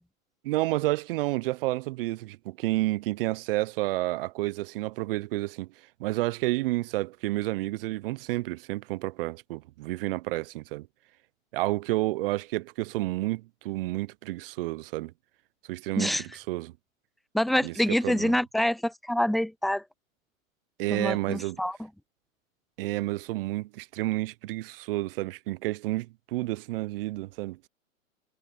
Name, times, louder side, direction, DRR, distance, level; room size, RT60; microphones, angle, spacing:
voice 1, 0.4-5.7 6.0-10.9 11.5-15.1 15.7-16.7 17.6-18.4 20.8-21.6 22.8-27.6, right 18 dB, 45° right, 1.0 m, -30 dB
voice 2, 17.3-19.8 20.9-21.8, left 1 dB, ahead, 0.6 m, -26 dB
hypercardioid pair, 115°, 41 cm